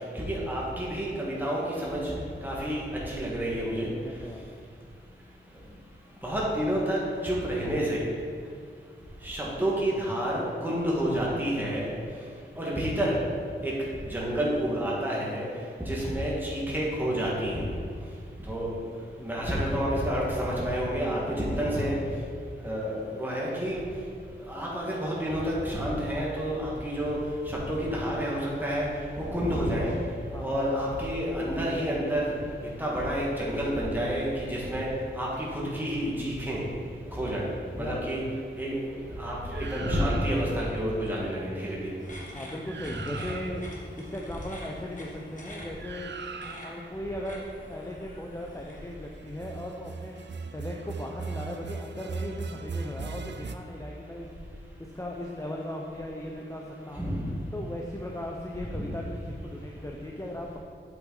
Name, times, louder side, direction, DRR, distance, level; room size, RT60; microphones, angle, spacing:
voice 1, 0.1-2.1 2.4-3.9 6.2-8.0 9.2-11.9 12.6-13.2 13.6-13.7 14.1-15.4 15.9-17.7 18.5-18.7 19.2-21.9 22.6-23.8 24.5-27.2 27.5-28.9 29.2-29.9 30.4-32.3 32.8-34.9 35.2-36.6 37.1-37.5 37.8-38.2 38.6-38.8 39.2-42.0 57.0-57.3 58.8-58.9, equal, 10° right, -5 dB, 1.6 m, -29 dB
voice 2, 3.7-4.5 19.4-19.5 21.7-22.0 30.3-30.5 37.8-38.0 42.3-43.6 44.0-46.1 46.6-50.1 50.5-57.1 57.5-60.6, left 1 dB, 15° left, -1 dB, 0.6 m, -38 dB
sound 1, 39.5-40.7 42.3-42.4 42.6-43.8 45.8-46.9 49.3-53.5, right 4 dB, 60° right, 0.4 m, -39 dB
sound 2, 42.0-48.9, equal, 40° left, 1.6 m, -47 dB
8.3 x 6.0 x 3.9 m, 2.3 s
wide cardioid pair, 95°, 20 cm